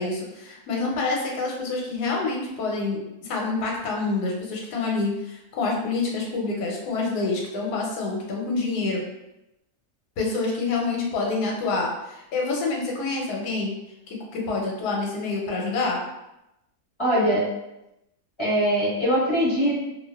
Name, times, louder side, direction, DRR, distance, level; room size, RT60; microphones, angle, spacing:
voice 1, 0.0-9.0 10.2-13.8 14.1-16.0, left 3 dB, 90° left, -1 dB, 1.1 m, -27 dB
voice 2, 17.0-17.4 18.4-19.7, equal, 20° left, -11 dB, 1.0 m, -22 dB
2.5 x 2.2 x 2.2 m, 0.92 s
omnidirectional pair, 1.6 m